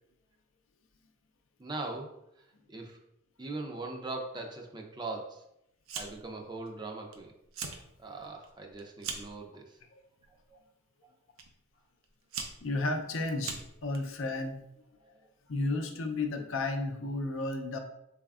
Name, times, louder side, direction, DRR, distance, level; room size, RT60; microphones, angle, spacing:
voice 1, 1.6-2.2 2.7-3.0 3.4-5.4 6.0-7.3 8.0-9.8 10.5-10.6 15.0-15.2, right 2 dB, 20° right, 2 dB, 0.4 m, -40 dB
Fire, 5.9-6.4 6.7-7.2 7.4-7.8 8.2-9.4 10.2-10.5 11.4-11.5 12.0-14.0, right 5 dB, 85° right, 0.5 m, -40 dB
voice 2, 12.6-14.6 15.5-17.8, left 2 dB, 70° left, 4 dB, 0.5 m, -33 dB
4.1 x 3.5 x 2.3 m, 0.80 s
head